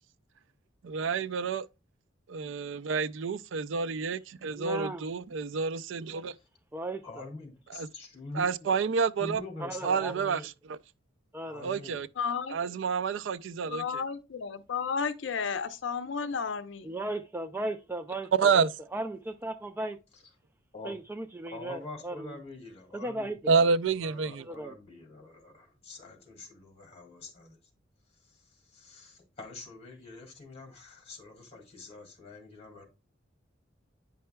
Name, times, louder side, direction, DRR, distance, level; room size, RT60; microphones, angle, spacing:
voice 1, 0.8-1.7 2.3-6.3 7.8-7.9 8.3-9.4 9.8-10.8 11.6-12.1 12.5-14.0 18.3-18.7 23.5-24.5, right 5 dB, 85° right, 0.4 m, -28 dB
voice 2, 4.6-5.0 6.7-7.3 9.6-10.1 11.3-11.7 16.8-20.0 20.8-22.4 22.9-23.5 24.4-24.7, right 2 dB, 10° right, 0.3 m, -36 dB
voice 3, 7.0-8.4 9.2-10.4 11.5-12.0 20.7-20.9 21.5-23.4 24.0-27.6 28.2-32.9, left 3 dB, 35° left, 2.4 m, -45 dB
voice 4, 12.2-12.6 13.7-16.9, left 6 dB, 75° left, 0.5 m, -32 dB
9.4 x 5.5 x 2.2 m
head